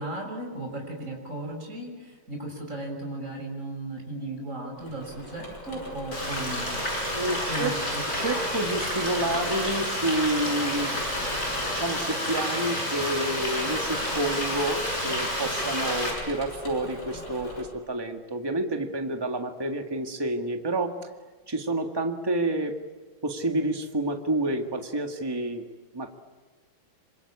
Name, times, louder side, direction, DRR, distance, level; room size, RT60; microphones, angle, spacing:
voice 1, 0.0-6.8 7.5-7.7, right 2 dB, 35° right, 1 dB, 6.9 m, -36 dB
Engine / Mechanisms, 4.8-17.6, left 1 dB, 80° left, 7.4 m, -42 dB
Frying (food), 6.1-16.1, left 1 dB, 40° left, 8.3 m, -29 dB
voice 2, 7.1-7.7 8.2-10.9 11.7-20.9 21.5-22.7 23.2-25.6 25.9-26.1, right 2 dB, 10° right, 4 dB, 1.8 m, -29 dB
26.5 x 25.0 x 8.7 m, 1.3 s
omnidirectional pair, 2.2 m